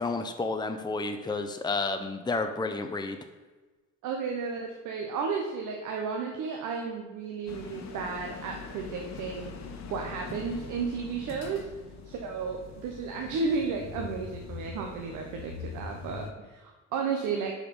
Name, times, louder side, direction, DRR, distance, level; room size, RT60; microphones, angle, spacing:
voice 1, 0.0-3.2, left 3 dB, 15° left, 6 dB, 0.7 m, -31 dB
voice 2, 4.0-9.5 9.9-11.7 12.0-17.5, right 5 dB, 90° right, 2 dB, 1.0 m, -33 dB
sound 1, 7.5-16.3, left 5 dB, 65° left, 1.2 m, -43 dB
10.0 x 4.9 x 5.4 m, 1.2 s
cardioid pair, 90°, 30 cm